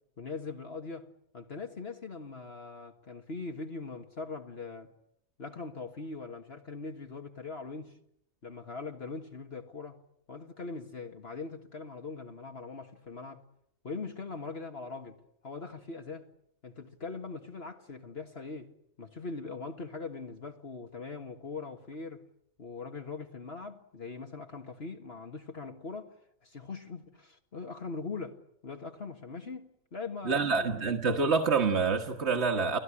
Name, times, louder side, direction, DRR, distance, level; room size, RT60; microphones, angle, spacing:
voice 1, 0.2-1.1 1.3-4.9 5.4-8.0 8.4-10.0 10.3-13.4 13.8-15.2 15.4-16.3 16.6-18.7 19.0-22.2 22.6-26.2 26.4-30.9, left 4 dB, 50° left, 1.9 m, -41 dB
voice 2, 30.3-32.8, right 4 dB, 55° right, 1.8 m, -27 dB
30.0 x 18.0 x 10.0 m
omnidirectional pair, 1.4 m